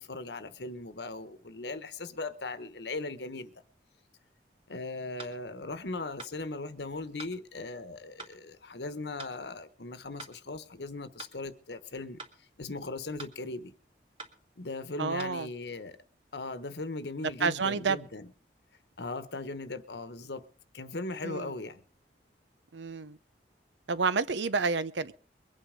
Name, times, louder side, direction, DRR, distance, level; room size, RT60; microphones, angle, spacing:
voice 1, 0.0-3.5 4.7-12.2 12.6-13.7 14.6-16.0 16.3-18.3 19.0-20.4 20.7-21.8, left 3 dB, 70° left, 1.2 m, -38 dB
sound 1, 5.2-5.4 6.2-6.4 7.2-7.4 8.2-8.4 9.2-9.4 10.2-10.4 11.2-11.4 12.2-12.4 13.2-13.4 14.2-14.4 15.2-15.4, right 3 dB, 30° right, 2.0 m, -45 dB
voice 2, 15.0-15.5 17.4-18.0 21.2-21.5 22.7-23.2 23.9-25.1, right 4 dB, 85° right, 0.8 m, -29 dB
22.5 x 9.2 x 5.1 m
head